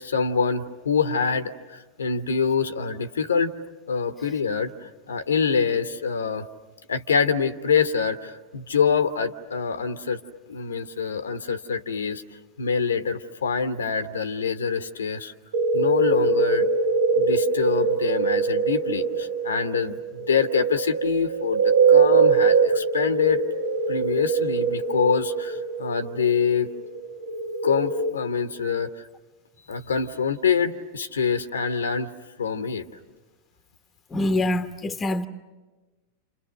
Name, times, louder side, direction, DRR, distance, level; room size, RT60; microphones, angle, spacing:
voice 1, 0.0-3.5 3.9-6.5 6.9-10.2 10.5-12.2 12.6-15.3 15.7-16.7 17.2-23.4 23.9-26.7 27.6-29.0 29.7-32.1 32.4-32.9, left 6 dB, 70° left, 1.0 m, -25 dB
sound 1, 15.5-28.1, right 4 dB, 65° right, 1.2 m, -23 dB
voice 2, 34.1-35.3, left 1 dB, 15° left, 1.1 m, -25 dB
29.5 x 28.5 x 6.5 m
figure-of-eight pair, 90°, 0 cm